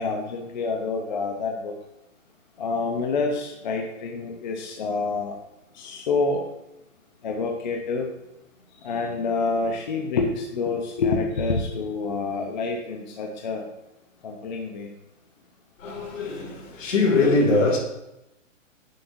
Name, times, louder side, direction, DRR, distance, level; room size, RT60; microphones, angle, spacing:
voice 1, 0.0-1.7 2.6-5.3 5.7-6.4 7.2-8.1 8.8-13.6 14.2-14.9, left 4 dB, 35° left, 0.7 m, -27 dB
voice 2, 15.8-17.8, left 3 dB, 75° left, 2.6 m, -22 dB
7.6 x 7.1 x 2.6 m
hypercardioid pair, 170°, 39 cm